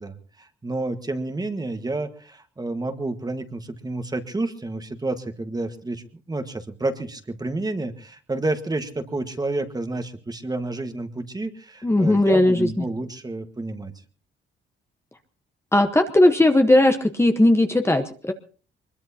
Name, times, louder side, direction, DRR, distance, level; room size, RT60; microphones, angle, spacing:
voice 1, 0.0-6.0 6.3-13.9, right 2 dB, 20° right, 8 dB, 1.6 m, -30 dB
voice 2, 11.8-12.8 15.7-18.3, left 1 dB, 15° left, 6 dB, 1.2 m, -18 dB
23.0 x 21.0 x 2.9 m, 0.40 s
cardioid pair, 90°, 20 cm